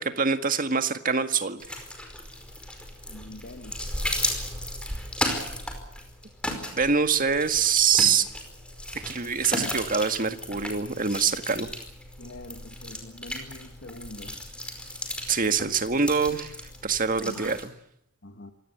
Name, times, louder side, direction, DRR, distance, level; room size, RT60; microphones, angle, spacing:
voice 1, 0.0-1.8 6.7-8.3 9.1-11.7 15.3-16.5 16.8-17.7, right 6 dB, 40° right, 9 dB, 1.8 m, -24 dB
sound 1, 1.6-17.7, left 1 dB, 5° left, 5.0 m, -35 dB
voice 2, 3.1-3.9 12.2-14.4 18.2-18.5, left 2 dB, 50° left, 6 dB, 1.7 m, -44 dB
26.5 x 17.5 x 8.0 m, 0.80 s
head